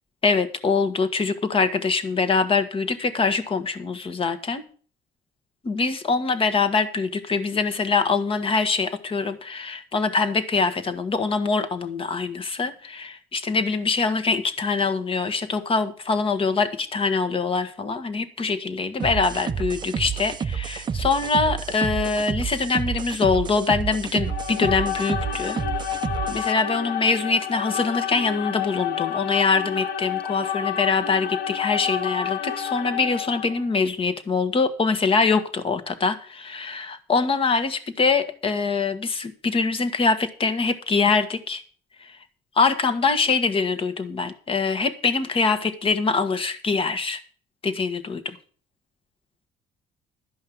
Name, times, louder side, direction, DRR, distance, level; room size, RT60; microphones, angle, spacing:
voice 1, 0.2-4.6 5.6-25.6 26.3-41.6 42.0-42.2 42.5-47.2 47.6-48.4, left 4 dB, 35° left, 1.4 m, -24 dB
sound 1, 19.0-26.5, right 7 dB, 25° right, 0.5 m, -30 dB
sound 2, 24.2-33.6, left 9 dB, 65° left, 1.0 m, -29 dB
12.5 x 5.4 x 8.7 m
cardioid pair, 110°, 17 cm